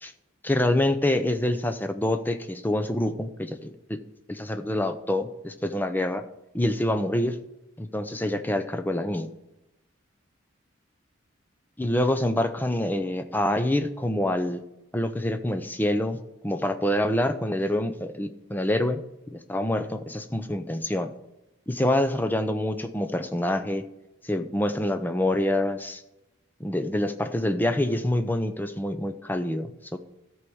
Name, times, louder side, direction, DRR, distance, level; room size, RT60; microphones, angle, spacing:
voice 1, 0.4-4.0 4.3-6.2 6.5-7.4 7.8-9.3 11.8-14.6 14.9-16.2 16.4-19.0 19.3-21.1 21.7-23.8 24.2-26.0 26.6-30.0, left 1 dB, 10° left, 8 dB, 0.6 m, -26 dB
13.0 x 4.7 x 7.0 m, 0.92 s
head